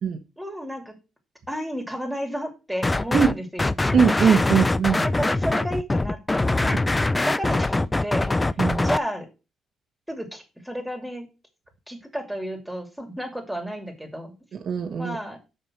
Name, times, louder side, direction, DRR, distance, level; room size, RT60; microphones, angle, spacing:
voice 1, 0.4-0.9 1.5-3.7 4.5-4.6 5.2-6.8 7.2-8.3 8.8-9.3 10.1-11.3 11.9-14.3 15.0-15.4, equal, 5° right, 2.5 m, -32 dB
sound 1, 2.8-3.3 3.6-9.0, left 2 dB, 15° left, 0.4 m, -23 dB
voice 2, 3.9-5.0 8.6-8.9 14.5-15.2, right 6 dB, 60° right, 1.3 m, -21 dB
6.8 x 5.1 x 6.1 m
cardioid pair, 90°, 0 cm